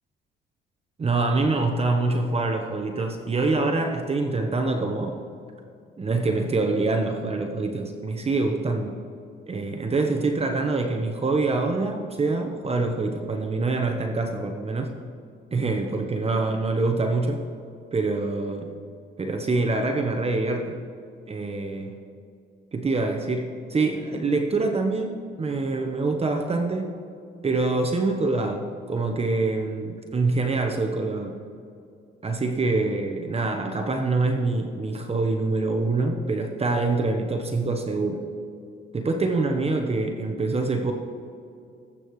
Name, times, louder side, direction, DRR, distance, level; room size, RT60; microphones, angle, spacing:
voice 1, 1.0-5.2 6.0-9.0 9.5-15.0 15.5-17.4 17.9-18.7 19.2-20.8 21.3-22.0 22.7-26.9 27.4-31.4 32.2-38.2 38.9-40.9, right 3 dB, 30° right, 4 dB, 1.0 m, -25 dB
19.0 x 8.4 x 3.2 m, 2.4 s
cardioid pair, 90°, 20 cm